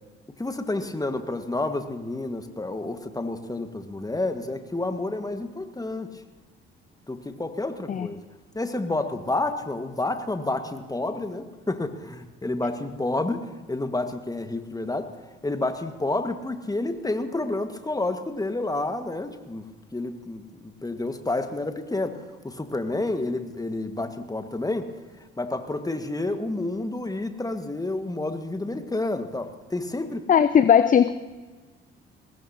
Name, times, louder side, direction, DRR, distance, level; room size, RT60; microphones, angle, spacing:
voice 1, 0.4-6.1 7.1-8.2 8.5-15.1 15.4-19.6 19.9-22.2 22.4-24.9 25.4-30.3, left 2 dB, 10° left, 8 dB, 1.6 m, -29 dB
voice 2, 30.3-31.1, left 8 dB, 25° left, 14 dB, 0.5 m, -18 dB
22.5 x 19.5 x 2.8 m, 1.3 s
figure-of-eight pair, 45°, 30 cm